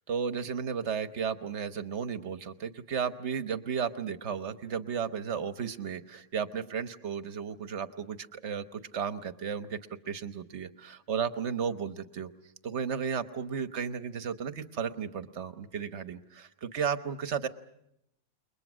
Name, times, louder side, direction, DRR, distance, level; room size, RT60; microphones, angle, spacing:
voice 1, 0.1-9.8 10.1-12.3 12.6-17.5, right 7 dB, 55° right, 12 dB, 1.4 m, -34 dB
29.0 x 22.0 x 6.2 m, 0.79 s
omnidirectional pair, 1.5 m